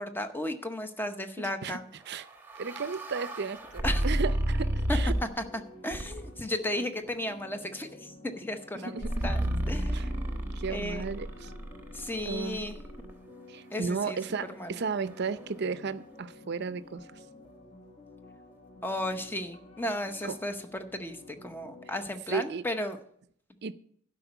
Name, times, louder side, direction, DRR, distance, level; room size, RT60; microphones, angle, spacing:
voice 1, 0.0-1.9 3.8-4.0 4.9-5.0 5.4-5.5 5.8-10.4 10.7-11.1 11.9-12.8 13.7-14.7 18.8-23.0, left 1 dB, 10° left, 8 dB, 0.8 m, -35 dB
voice 2, 1.4-1.8 2.1-2.2 2.6-5.1 8.8-9.5 9.9-10.1 10.6-11.5 12.3-12.6 13.5-17.0 20.2-20.3 22.3-22.6 23.6-23.7, right 5 dB, 55° right, 14 dB, 0.6 m, -34 dB
sound 1, 2.1-5.4 5.9-6.4 9.0-13.1, right 1 dB, 10° right, 1.1 m, -32 dB
sound 2, 3.8-22.2, left 2 dB, 30° left, 1.4 m, -51 dB
12.0 x 5.3 x 8.0 m, 0.64 s
head